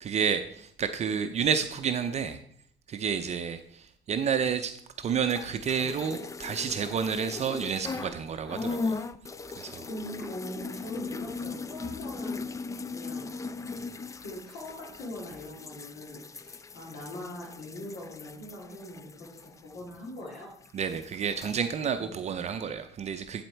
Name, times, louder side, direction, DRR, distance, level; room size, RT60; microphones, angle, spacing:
voice 1, 0.0-2.4 2.9-9.0 9.6-9.9 20.7-23.4, right 7 dB, 40° right, 8 dB, 0.5 m, -30 dB
voice 2, 1.0-1.4 9.9-12.6 12.9-13.4 14.2-20.5 22.0-22.2, left 1 dB, 70° left, -3 dB, 2.4 m, -42 dB
sound 1, 5.3-8.2 8.5-20.4 20.6-21.6, left 4 dB, 20° left, 0.3 m, -38 dB
11.0 x 4.3 x 4.5 m, 0.65 s
cardioid pair, 110°, 17 cm